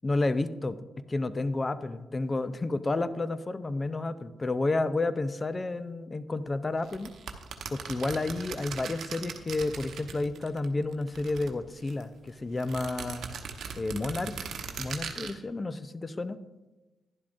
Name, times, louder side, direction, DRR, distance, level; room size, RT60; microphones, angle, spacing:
voice 1, 0.0-0.8 1.1-7.1 7.7-13.2 13.7-14.3 14.8-16.4, left 2 dB, 30° left, 13 dB, 0.6 m, -31 dB
sound 1, 6.9-10.7 10.9-12.0 12.6-15.3, right 6 dB, 65° right, 1.0 m, -39 dB
11.5 x 11.0 x 2.6 m, 1.1 s
hypercardioid pair, 45°, 0 cm